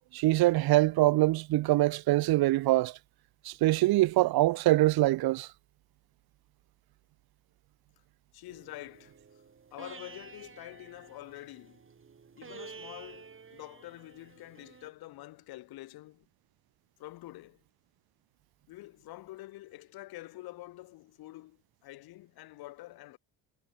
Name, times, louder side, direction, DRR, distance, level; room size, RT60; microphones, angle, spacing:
voice 1, 0.1-3.0 3.5-5.5, right 17 dB, 80° right, 1.7 m, -24 dB
voice 2, 8.3-9.1 9.7-11.8 12.4-16.3 17.0-17.6 18.7-23.2, left 17 dB, 85° left, 6.8 m, -47 dB
sound 1, 8.5-14.9, right 5 dB, 35° right, 6.2 m, -51 dB
cardioid pair, 95°, 36 cm